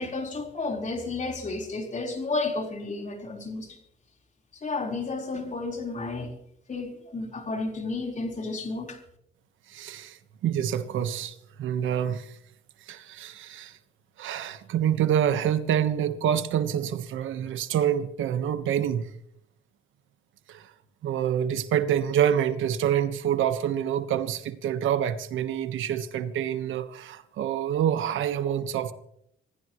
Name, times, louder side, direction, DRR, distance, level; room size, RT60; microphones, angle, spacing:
voice 1, 0.0-3.8 4.5-6.3 6.7-9.0, left 3 dB, 40° left, 1 dB, 4.6 m, -32 dB
voice 2, 9.7-12.4 12.8-13.8 14.2-19.1 20.5-20.7 21.0-28.9, right 9 dB, 80° right, 11 dB, 1.4 m, -27 dB
26.5 x 15.5 x 3.2 m, 0.74 s
cardioid pair, 90°, 20 cm